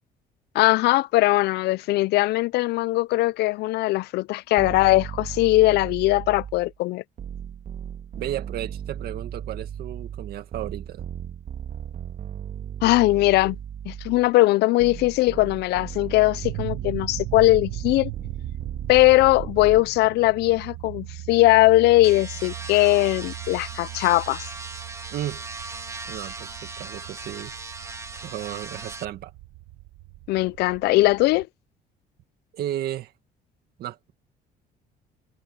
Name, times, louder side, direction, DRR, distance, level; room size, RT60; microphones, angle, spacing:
voice 1, 0.5-7.0 12.8-13.6 13.9-18.1 18.9-24.4 30.3-31.5, left 19 dB, 75° left, 0.5 m, -20 dB
sound 1, 4.6-6.7 7.2-14.3 14.8-19.8, right 9 dB, 50° right, 2.0 m, -36 dB
voice 2, 8.2-11.1 25.1-25.4 26.1-27.5 28.2-29.3 32.5-33.1 33.8-34.1, right 12 dB, 70° right, 1.9 m, -33 dB
sound 2, 16.4-31.4, right 17 dB, 85° right, 1.7 m, -39 dB
sound 3, 22.0-29.1, right 3 dB, 15° right, 2.0 m, -38 dB
cardioid pair, 110°, 17 cm